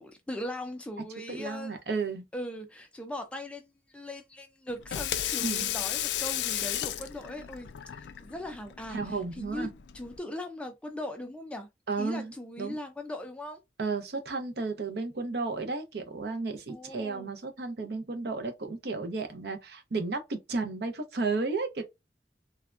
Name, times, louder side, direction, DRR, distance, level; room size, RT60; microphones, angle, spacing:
voice 1, 0.0-1.7 2.3-11.7 12.0-13.6 16.7-17.3, left 1 dB, 5° left, 0.4 m, -39 dB
voice 2, 1.3-2.3 5.4-5.7 8.9-9.7 11.9-12.8 13.8-21.8, right 3 dB, 65° right, 0.6 m, -33 dB
Water tap faucet / Sink (filling or washing), 4.7-10.2, left 11 dB, 80° left, 0.3 m, -34 dB
3.4 x 2.1 x 2.3 m
head